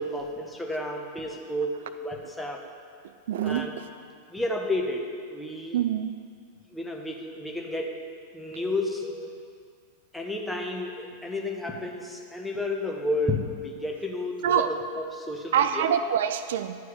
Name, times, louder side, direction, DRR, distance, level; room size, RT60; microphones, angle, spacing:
voice 1, 0.0-2.6 3.4-3.8 4.3-5.8 6.7-8.0 8.3-9.3 10.1-16.0, left 1 dB, 5° left, 1 dB, 1.1 m, -31 dB
voice 2, 3.3-3.7 5.7-6.1 14.4-14.7 15.5-16.8, right 9 dB, 60° right, 10 dB, 0.3 m, -25 dB
11.0 x 4.8 x 7.0 m, 2.2 s
figure-of-eight pair, 90°, 0 cm